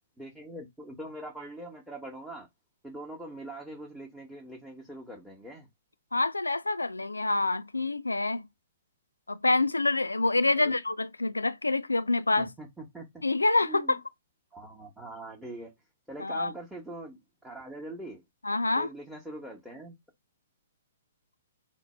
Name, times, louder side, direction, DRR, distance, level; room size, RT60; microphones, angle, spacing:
voice 1, 0.2-2.5 2.8-5.7 10.6-10.7 12.4-13.2 13.6-14.0 14.5-15.7 16.1-18.2 18.8-20.0, right 1 dB, 5° right, 0.9 m, -43 dB
voice 2, 6.1-8.5 9.3-12.5 13.2-14.0 16.2-16.5 18.4-18.9, left 2 dB, 85° left, 0.3 m, -27 dB
4.3 x 2.1 x 4.2 m
figure-of-eight pair, 115°, 0 cm